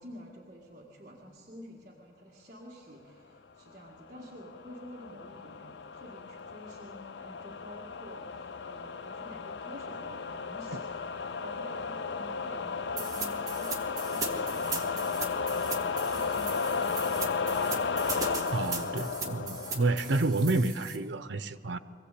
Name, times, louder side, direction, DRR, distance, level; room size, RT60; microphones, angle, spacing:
voice 1, 0.0-17.5, equal, 45° right, -4 dB, 1.9 m, -49 dB
sound 1, 4.1-20.6, left 5 dB, 80° left, 0.5 m, -34 dB
sound 2, 13.0-21.0, right 4 dB, 20° right, 1.9 m, -38 dB
voice 2, 18.5-21.8, right 2 dB, 90° right, 12 dB, 0.8 m, -29 dB
23.0 x 15.5 x 8.4 m, 2.6 s
head